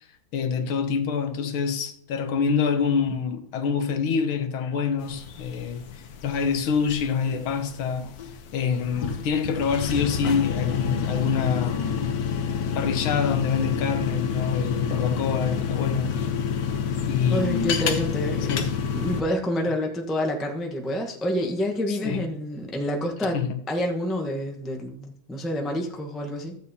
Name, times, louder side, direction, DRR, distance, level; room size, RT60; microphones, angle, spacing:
voice 1, 0.3-5.8 6.2-8.1 8.5-12.1 12.7-16.2 17.1-17.7 18.5-18.6 21.9-22.2 23.3-23.5, left 6 dB, 80° left, 1.7 m, -26 dB
sound 1, 5.0-19.2, left 7 dB, 60° left, 1.1 m, -28 dB
voice 2, 17.3-26.6, equal, ahead, 0.4 m, -28 dB
13.5 x 8.3 x 2.8 m
omnidirectional pair, 2.3 m